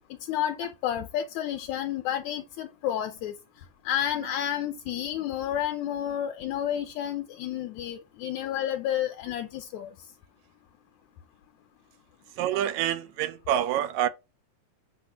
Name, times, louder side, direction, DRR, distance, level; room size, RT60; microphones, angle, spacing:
voice 1, 0.1-3.4 3.9-10.0, left 10 dB, 75° left, 1.9 m, -30 dB
voice 2, 12.4-14.1, right 11 dB, 80° right, 2.0 m, -27 dB
8.2 x 2.9 x 5.8 m
omnidirectional pair, 3.4 m